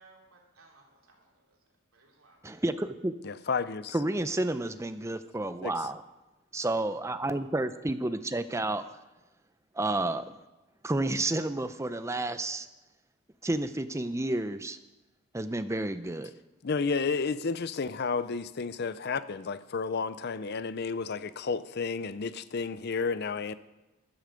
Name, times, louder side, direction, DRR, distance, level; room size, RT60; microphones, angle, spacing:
voice 1, 0.0-2.4, right 3 dB, 70° right, -1 dB, 3.2 m, -60 dB
voice 2, 2.4-3.2 3.9-6.0 6.5-8.8 9.8-10.3 10.8-12.7 13.4-14.8 15.3-16.3, right 2 dB, 15° right, 11 dB, 0.5 m, -30 dB
voice 3, 3.2-4.0 5.6-5.7 16.6-23.6, left 4 dB, 50° left, 15 dB, 0.5 m, -31 dB
15.0 x 11.5 x 5.2 m, 1.1 s
head